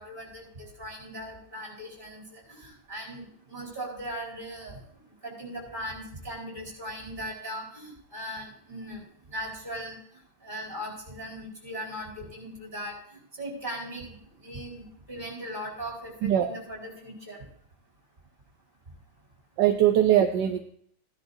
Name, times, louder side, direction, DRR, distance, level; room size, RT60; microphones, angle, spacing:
voice 1, 0.0-4.8 5.2-9.0 9.3-9.9 10.4-12.9 13.4-14.1 14.4-14.8 15.1-17.4, equal, 20° right, -3 dB, 4.6 m, -38 dB
voice 2, 16.2-16.5 19.6-20.6, right 11 dB, 70° right, 6 dB, 1.1 m, -21 dB
16.0 x 10.5 x 2.7 m, 0.66 s
omnidirectional pair, 2.3 m